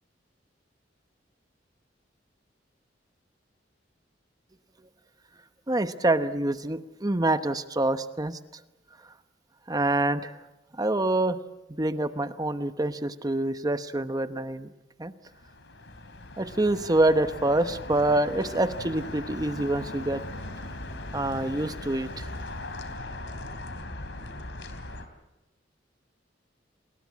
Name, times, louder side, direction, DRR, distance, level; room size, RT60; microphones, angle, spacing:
voice 1, 5.7-8.4 9.7-10.4 10.7-11.4 11.8-14.7 15.0-15.1 16.4-20.2 21.1-22.3, right 2 dB, 20° right, 10 dB, 1.0 m, -26 dB
sound 1, 15.3-25.1, left 2 dB, 75° left, 3.2 m, -39 dB
29.5 x 20.0 x 8.4 m, 0.97 s
head